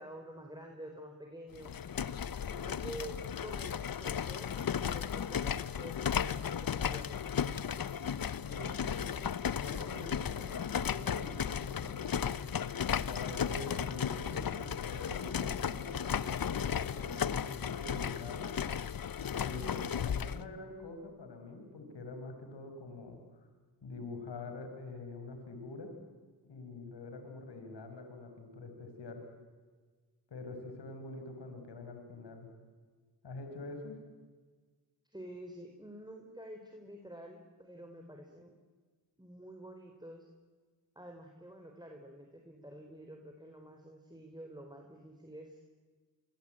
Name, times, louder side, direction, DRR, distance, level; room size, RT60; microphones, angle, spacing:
voice 1, 0.0-1.7 2.5-8.1 35.1-38.5 39.2-40.3 40.9-45.6, right 1 dB, 10° right, 3 dB, 4.5 m, -49 dB
sound 1, 1.5-20.4, left 8 dB, 50° left, 1.0 m, -35 dB
voice 2, 8.4-12.3 12.9-18.5 19.3-23.5 23.8-25.9 26.4-29.2 30.3-32.5 33.2-34.0, left 3 dB, 70° left, 5 dB, 5.7 m, -45 dB
26.5 x 25.0 x 9.1 m, 1.5 s
supercardioid pair, 40°, 43 cm